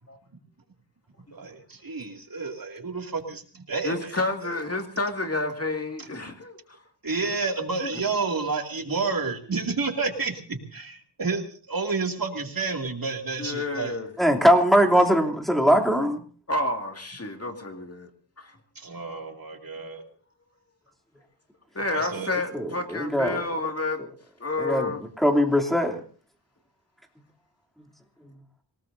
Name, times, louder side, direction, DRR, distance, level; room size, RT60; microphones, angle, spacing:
voice 1, 1.3-4.6 6.0-6.1 7.0-13.9 15.0-15.1 18.7-20.0 21.9-22.3, right 4 dB, 55° right, 3 dB, 2.5 m, -30 dB
voice 2, 3.8-6.6 13.4-14.1 16.5-18.1 18.4-18.6 21.7-24.0 24.4-25.0, left 2 dB, 35° left, 4 dB, 2.3 m, -29 dB
voice 3, 14.2-16.2 22.5-23.4 24.6-24.9 25.2-26.0, equal, ahead, 1 dB, 3.0 m, -21 dB
27.0 x 18.5 x 2.7 m, 0.41 s
wide cardioid pair, 80°, 41 cm